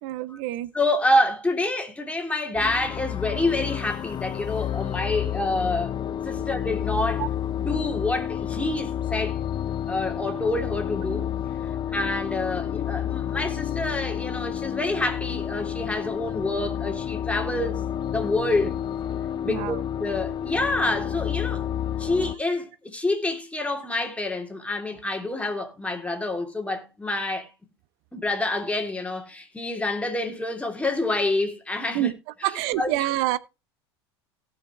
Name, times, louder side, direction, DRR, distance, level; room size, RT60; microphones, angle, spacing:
voice 1, 0.0-0.7 7.2-7.3 19.5-19.8 31.9-32.1 32.4-33.4, right 16 dB, 60° right, 0.8 m, -26 dB
voice 2, 0.7-5.9 6.2-7.3 7.6-9.4 9.9-11.3 11.9-17.8 18.1-18.8 19.4-21.7 22.0-27.5 28.1-32.1 32.4-32.9, left 2 dB, 10° left, 2.9 m, -27 dB
sound 1, 2.5-22.3, left 10 dB, 35° left, 0.7 m, -30 dB
17.5 x 5.8 x 3.1 m
hypercardioid pair, 75°, 14 cm